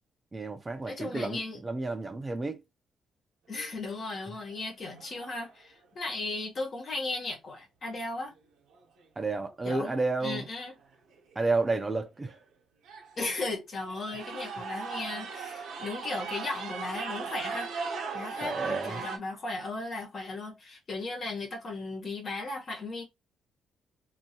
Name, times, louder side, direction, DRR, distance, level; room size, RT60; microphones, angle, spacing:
voice 1, 0.3-2.6 9.2-10.4 11.4-12.4 18.4-19.0, right 3 dB, 25° right, 0.6 m, -31 dB
voice 2, 0.9-1.6 3.5-8.3 9.6-10.0 10.2-10.7 13.2-17.7 18.1-23.0, left 2 dB, 50° left, 1.2 m, -36 dB
sound 1, 3.5-4.0 4.5-4.6 4.9-5.5 8.7-8.8 9.9-10.0 10.3-10.6 11.1-11.2 11.9-12.0 12.3-12.4 12.8-13.3 13.8-19.2, right 5 dB, 85° right, 0.9 m, -38 dB
2.7 x 2.6 x 2.8 m
cardioid pair, 90°, 0 cm